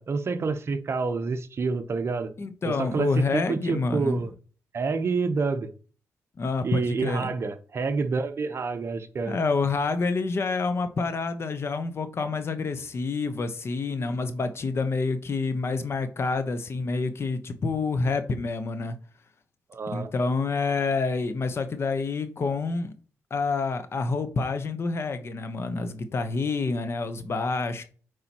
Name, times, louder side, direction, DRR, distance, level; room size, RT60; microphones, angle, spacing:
voice 1, 0.0-2.3 2.6-4.3 4.7-5.7 6.6-9.4 19.7-20.1, right 4 dB, 45° right, 0.9 m, -28 dB
voice 2, 2.4-4.2 6.4-7.3 9.2-19.0 19.9-22.9 23.3-27.8, left 4 dB, 45° left, 1.0 m, -28 dB
8.3 x 4.8 x 3.0 m
cardioid pair, 85°, 6 cm